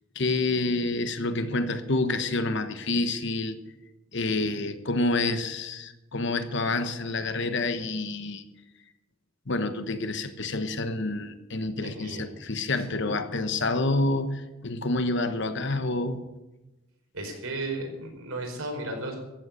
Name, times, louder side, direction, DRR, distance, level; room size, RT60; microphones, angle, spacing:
voice 1, 0.1-3.6 4.1-8.4 9.5-16.2, left 2 dB, 55° left, 10 dB, 1.1 m, -28 dB
voice 2, 11.8-12.3 12.9-13.1 17.1-19.2, right 2 dB, 80° right, 1 dB, 4.7 m, -34 dB
14.5 x 8.0 x 9.4 m, 1.0 s
head